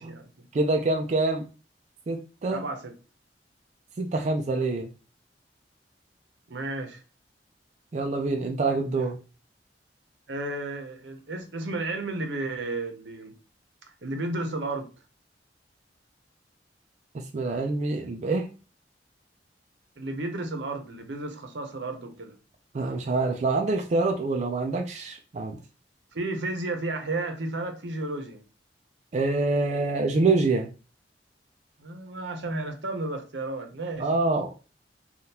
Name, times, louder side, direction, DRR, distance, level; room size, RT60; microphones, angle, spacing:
voice 1, 0.0-0.5 2.5-2.9 6.5-7.0 10.3-13.3 14.0-14.9 20.0-22.3 26.1-28.4 31.8-34.1, right 2 dB, 80° right, 0.7 m, -33 dB
voice 2, 0.5-1.4 2.1-2.6 4.0-4.9 7.9-9.2 17.1-18.5 22.7-25.6 29.1-30.7 34.0-34.5, right 3 dB, 40° right, 0.4 m, -26 dB
3.5 x 2.3 x 2.7 m
head